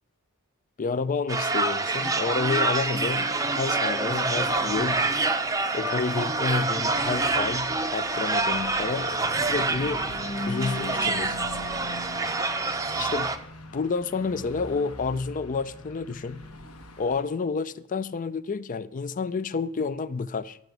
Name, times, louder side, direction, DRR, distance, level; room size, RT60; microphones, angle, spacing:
voice 1, 0.8-5.0 5.7-10.0 10.4-11.4 13.0-13.3 13.7-16.4 17.0-20.6, left 4 dB, 35° left, 0.4 m, -30 dB
sound 1, 1.3-13.4, right 3 dB, 15° right, 0.6 m, -27 dB
Car passing by / Truck, 3.4-17.2, left 2 dB, 80° left, 1.2 m, -41 dB
12.0 x 5.9 x 8.0 m
head